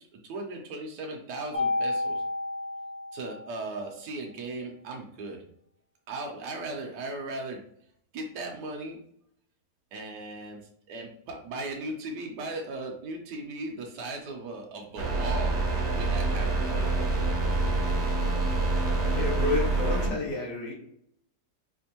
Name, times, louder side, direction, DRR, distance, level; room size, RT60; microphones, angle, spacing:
voice 1, 0.2-2.2 3.1-5.4 6.1-7.6 8.1-9.0 9.9-10.6 10.9-15.6 15.9-16.8, right 2 dB, 75° right, 1 dB, 1.2 m, -37 dB
Mallet percussion, 1.5-3.8, left 2 dB, 50° left, 0.4 m, -31 dB
sound 1, 15.0-20.1, right 3 dB, 55° right, 0.9 m, -26 dB
voice 2, 19.1-20.7, left 3 dB, 75° left, -4 dB, 1.9 m, -30 dB
4.3 x 2.5 x 2.8 m, 0.70 s
omnidirectional pair, 1.8 m